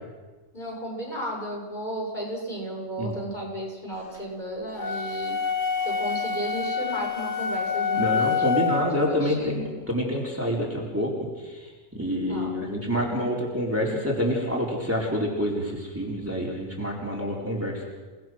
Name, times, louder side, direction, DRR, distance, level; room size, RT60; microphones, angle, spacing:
voice 1, 0.5-5.3 5.8-8.3 8.9-9.5 12.3-12.5, right 1 dB, 35° left, -2 dB, 7.6 m, -34 dB
sound 1, 4.8-9.0, left 6 dB, 65° left, 3.0 m, -27 dB
voice 2, 8.0-17.9, equal, 10° right, -4 dB, 4.2 m, -27 dB
29.5 x 20.0 x 6.2 m, 1.3 s
omnidirectional pair, 1.4 m